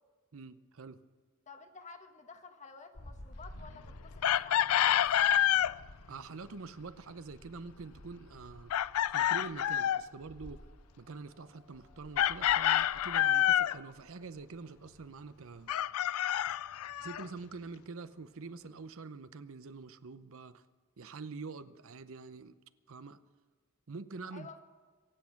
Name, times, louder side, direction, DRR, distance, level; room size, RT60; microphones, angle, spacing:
voice 1, 0.3-1.0 6.1-8.7 9.1-10.6 11.0-15.7 17.0-20.6 21.0-22.6 22.9-23.2 23.9-24.5, right 4 dB, 65° right, 12 dB, 0.7 m, -46 dB
voice 2, 1.5-5.1 24.3-24.6, left 4 dB, 35° left, 6 dB, 1.2 m, -52 dB
sound 1, 2.9-19.0, left 1 dB, 90° left, 1.6 m, -55 dB
Chicken rooster, 4.2-5.7 8.7-10.1 12.2-13.8 15.7-17.2, left 11 dB, 75° left, 0.3 m, -28 dB
24.5 x 8.5 x 5.9 m, 1.5 s
head